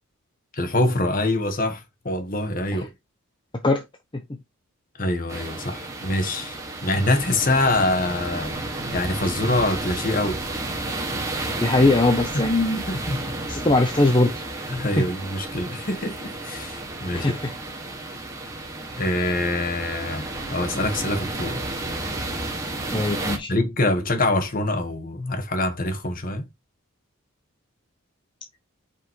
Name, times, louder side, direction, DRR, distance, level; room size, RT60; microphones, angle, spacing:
voice 1, 0.5-2.9 5.0-10.4 12.3-12.5 12.9-13.2 14.7-17.3 18.9-21.6 23.5-26.5, left 2 dB, 40° left, 1.4 m, -25 dB
sound 1, 5.3-23.4, right 2 dB, 15° right, 1.8 m, -32 dB
voice 2, 11.5-12.8 13.5-14.4 15.0-15.1 17.1-17.5 22.9-23.5, left 2 dB, 25° left, 0.7 m, -21 dB
7.7 x 5.3 x 3.1 m
head